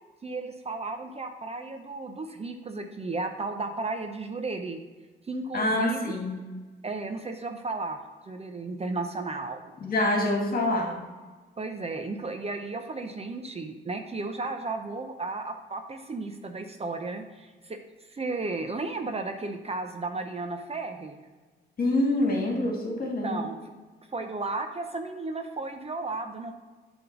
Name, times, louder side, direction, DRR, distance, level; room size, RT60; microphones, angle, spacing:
voice 1, 0.2-4.8 5.2-6.1 6.8-9.7 11.6-17.8 18.1-21.2 23.2-23.6 24.1-26.5, right 3 dB, 30° right, 6 dB, 0.7 m, -34 dB
voice 2, 5.5-6.4 9.8-11.0 21.8-23.5, left 1 dB, 45° left, 0 dB, 1.9 m, -26 dB
7.4 x 3.6 x 5.9 m, 1.3 s
cardioid pair, 75°, 20 cm